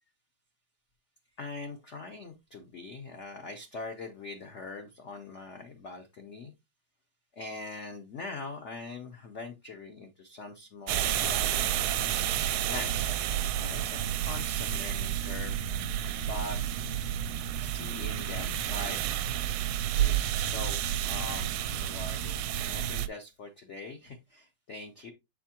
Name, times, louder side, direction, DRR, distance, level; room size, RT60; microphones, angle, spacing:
voice 1, 1.4-6.5 7.3-12.0 12.7-13.1 13.6-15.6 16.2-16.6 17.6-19.1 20.0-25.1, left 3 dB, 90° left, 5 dB, 0.6 m, -42 dB
sound 1, 10.9-23.1, right 10 dB, 80° right, 1.4 m, -30 dB
7.4 x 4.8 x 2.8 m, 0.22 s
omnidirectional pair, 2.3 m